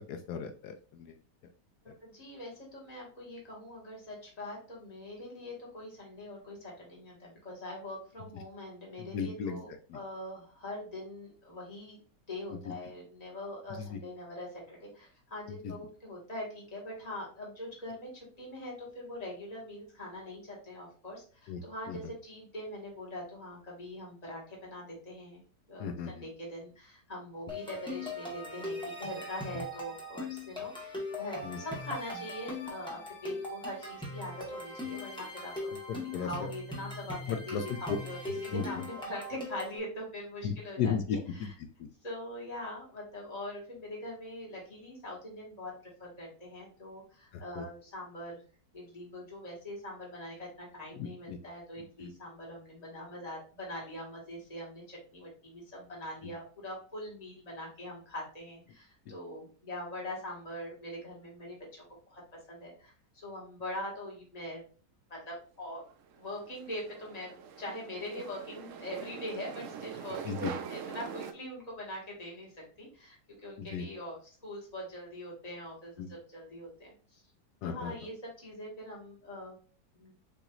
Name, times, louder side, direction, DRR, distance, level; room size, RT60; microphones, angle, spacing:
voice 1, 0.1-1.2 1.9-2.0 9.0-9.6 9.9-10.0 12.7-12.8 13.9-14.0 15.6-15.7 21.5-22.0 25.8-26.2 31.4-31.6 35.9-36.3 37.3-38.0 38.5-38.8 40.4-41.9 47.3-47.7 50.9-51.4 52.0-52.1 59.1-59.2 70.2-70.5 73.6-73.9 76.0-76.1 77.6-77.9, left 6 dB, 75° left, 6 dB, 1.0 m, -36 dB
voice 2, 1.8-9.7 9.9-12.0 12.3-25.4 25.7-35.5 36.2-38.2 38.4-41.5 42.0-45.7 46.0-48.4 48.7-62.2 62.5-64.6 65.1-65.8 66.2-67.3 67.6-72.5 72.8-77.2 77.6-79.6 80.0-80.1, left 1 dB, 25° left, -3 dB, 1.8 m, -43 dB
sound 1, 27.5-39.8, left 1 dB, 5° left, 1.1 m, -40 dB
sound 2, 65.9-71.3, right 7 dB, 75° right, 0.7 m, -43 dB
6.7 x 3.0 x 2.4 m, 0.39 s
omnidirectional pair, 1.9 m